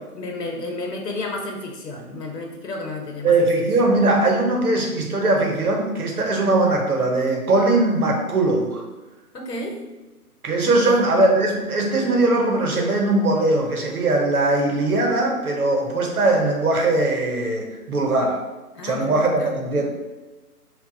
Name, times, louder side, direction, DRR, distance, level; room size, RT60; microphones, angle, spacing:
voice 1, 0.1-3.6 9.3-9.8 10.7-11.0 18.7-19.6, left 2 dB, 85° left, 2 dB, 0.9 m, -32 dB
voice 2, 3.2-8.8 10.4-18.4 18.8-19.8, right 2 dB, 65° right, 1 dB, 0.8 m, -20 dB
2.3 x 2.2 x 3.8 m, 1.1 s
figure-of-eight pair, 165°, 47 cm